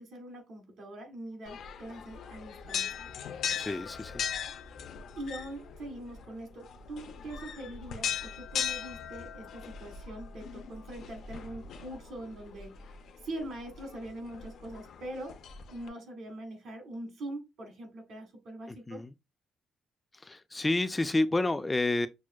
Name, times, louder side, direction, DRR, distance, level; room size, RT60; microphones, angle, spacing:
voice 1, 0.0-3.0 5.2-12.9 13.2-15.3 15.7-19.0, right 1 dB, 70° right, 1.7 m, -43 dB
sound 1, 1.5-15.9, left 8 dB, 70° left, 0.5 m, -39 dB
voice 2, 3.6-4.2 18.7-19.1 20.1-22.1, left 2 dB, 20° left, 0.3 m, -30 dB
6.0 x 2.1 x 2.2 m
cardioid pair, 90°, 0 cm